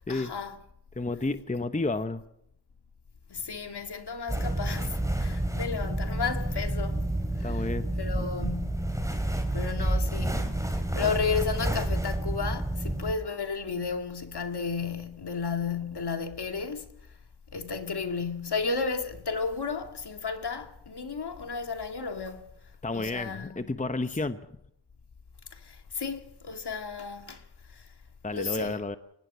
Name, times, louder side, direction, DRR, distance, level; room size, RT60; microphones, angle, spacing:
voice 1, 0.1-0.6 3.3-7.0 7.4-7.7 8.0-8.9 9.5-10.5 10.9-16.9 17.5-22.4 22.9-23.7 25.9-27.4 28.3-28.7, left 5 dB, 60° left, 2.4 m, -33 dB
voice 2, 1.0-2.2 7.4-7.8 22.8-24.4 28.2-29.0, left 2 dB, 15° left, 1.1 m, -31 dB
sound 1, 4.3-13.1, right 1 dB, 5° right, 4.4 m, -29 dB
24.0 x 19.0 x 6.2 m
cardioid pair, 50°, 46 cm